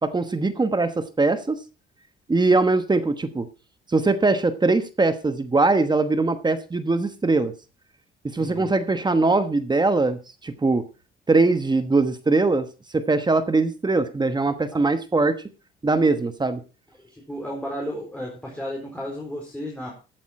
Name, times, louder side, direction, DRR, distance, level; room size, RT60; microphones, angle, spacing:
voice 1, 0.0-1.6 2.3-3.5 3.9-7.5 8.2-10.8 11.3-12.7 12.9-15.4 15.8-16.6, right 3 dB, 20° right, 11 dB, 1.1 m, -21 dB
voice 2, 17.3-19.9, equal, 5° left, -2 dB, 4.1 m, -33 dB
14.5 x 9.0 x 4.3 m, 0.32 s
cardioid pair, 110°, 20 cm